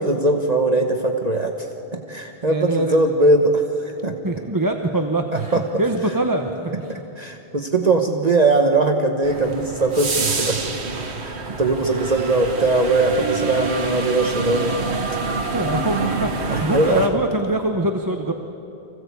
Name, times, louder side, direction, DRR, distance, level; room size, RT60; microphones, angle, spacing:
voice 1, 0.0-1.7 1.9-4.2 5.3-5.6 6.7-14.8 16.5-17.2, right 2 dB, 40° right, 3 dB, 1.2 m, -20 dB
voice 2, 2.5-3.0 4.2-7.0 15.5-18.3, right 1 dB, 20° right, 3 dB, 0.9 m, -23 dB
sound 1, 9.2-17.1, right 3 dB, 85° right, 1.6 m, -27 dB
25.0 x 16.0 x 8.3 m, 2.9 s
omnidirectional pair, 1.1 m